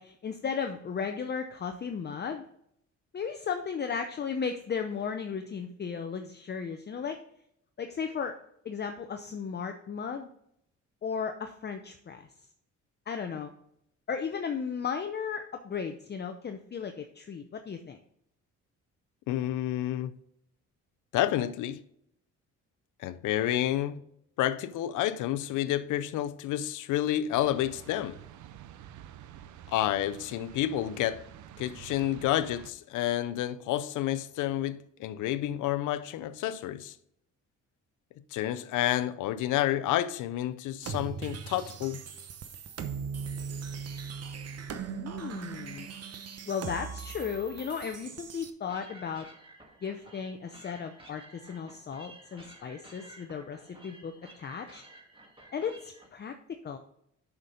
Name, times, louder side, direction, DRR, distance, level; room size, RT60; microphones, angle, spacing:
voice 1, 0.0-2.4 3.1-7.2 7.8-8.4 8.6-10.3 11.0-12.3 13.1-13.5 14.1-18.0 44.9-45.9 46.5-49.3 49.8-54.8 55.5-56.3 56.6-56.8, left 6 dB, 35° left, 0.6 m, -35 dB
voice 2, 19.3-20.1 21.1-21.8 23.0-24.0 24.4-28.2 29.7-31.3 31.6-37.0 38.3-42.0, left 12 dB, 85° left, 0.6 m, -29 dB
sound 1, 27.3-32.7, right 10 dB, 75° right, 0.6 m, -49 dB
sound 2, 40.8-48.5, right 6 dB, 55° right, 1.0 m, -39 dB
sound 3, 48.7-56.1, right 1 dB, 15° right, 1.8 m, -53 dB
6.6 x 5.9 x 5.0 m
cardioid pair, 90°, 30 cm